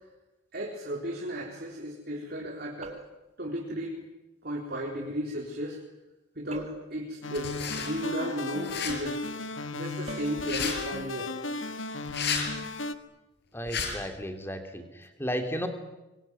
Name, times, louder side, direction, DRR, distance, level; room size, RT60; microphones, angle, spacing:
voice 1, 0.5-3.0 3.4-4.0 4.4-5.8 6.4-9.2 9.7-11.3, equal, 50° right, -1 dB, 3.9 m, -34 dB
sound 1, 2.8-3.3 6.5-7.0 10.1-10.4, right 1 dB, 35° right, 2.9 m, -44 dB
sound 2, 7.2-13.0, left 2 dB, 85° left, 1.6 m, -35 dB
sound 3, 7.3-7.9 8.6-8.9 10.4-10.8 12.1-12.5 13.7-13.9, left 6 dB, 60° left, 5.7 m, -31 dB
voice 2, 13.5-15.7, equal, 10° left, 6 dB, 2.8 m, -34 dB
25.0 x 23.0 x 9.6 m, 1.0 s
head